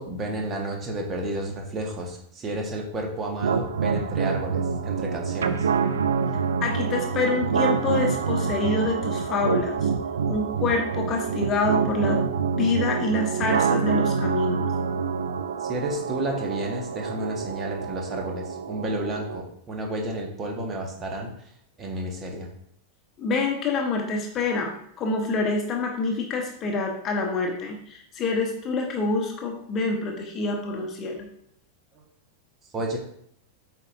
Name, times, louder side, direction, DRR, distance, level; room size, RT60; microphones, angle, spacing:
voice 1, 0.0-5.7 15.6-21.3 21.8-22.5 32.7-33.0, right 1 dB, 25° right, 1 dB, 1.5 m, -31 dB
sound 1, 3.4-19.4, right 6 dB, 65° right, 0.4 m, -26 dB
voice 2, 6.6-9.9 10.3-12.2 12.5-14.7 23.2-31.3, left 3 dB, 30° left, 2 dB, 1.1 m, -26 dB
8.5 x 4.7 x 2.7 m, 0.69 s
figure-of-eight pair, 90°, 0 cm